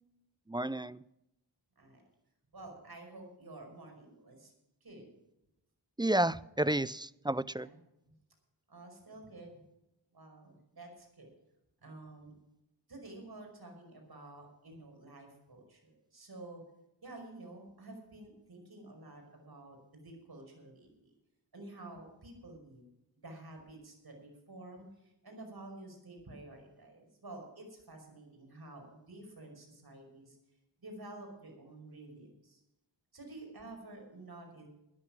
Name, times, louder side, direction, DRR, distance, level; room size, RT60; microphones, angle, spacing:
voice 1, 0.5-1.0 6.0-7.7, right 1 dB, 10° right, 19 dB, 0.4 m, -31 dB
voice 2, 2.5-4.5 4.8-5.1 7.6-7.8 8.1-8.2 8.7-9.6 10.1-11.3 11.8-12.3 12.9-16.6 17.0-21.1 21.5-22.8 23.2-30.4 30.8-32.6 33.1-34.7, right 2 dB, 55° right, 2 dB, 5.4 m, -50 dB
13.5 x 10.5 x 6.1 m, 0.87 s
cardioid pair, 45°, 45 cm